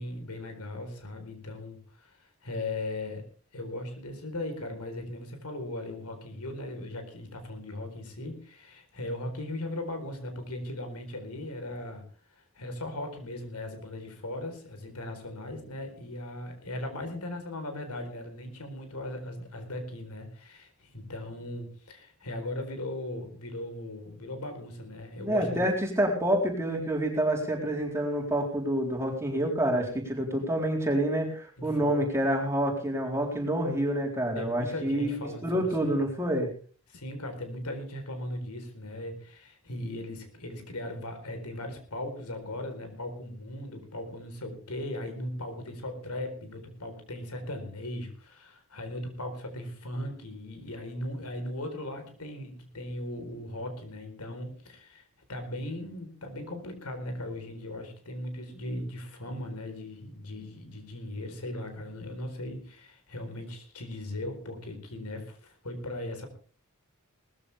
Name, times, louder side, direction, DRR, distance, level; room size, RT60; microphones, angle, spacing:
voice 1, 0.0-3.2 3.5-12.0 12.3-25.7 31.6-32.0 34.3-36.0 36.9-55.0 55.3-66.3, left 1 dB, 90° left, 6 dB, 4.3 m, -38 dB
voice 2, 25.2-36.5, right 1 dB, 10° right, 0 dB, 4.0 m, -28 dB
19.0 x 14.5 x 3.5 m, 0.40 s
head